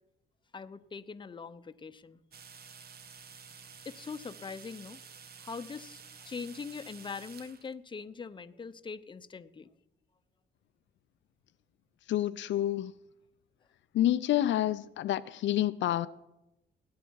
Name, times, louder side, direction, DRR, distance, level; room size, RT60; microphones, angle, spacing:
voice 1, 0.5-2.2 3.8-5.0 5.4-9.7, left 5 dB, 25° left, 0.7 m, -42 dB
sound 1, 2.3-7.7, right 6 dB, 50° right, 1.0 m, -51 dB
voice 2, 12.1-12.9 13.9-16.1, left 13 dB, 70° left, 0.4 m, -28 dB
17.0 x 10.5 x 4.7 m
cardioid pair, 90°, 20 cm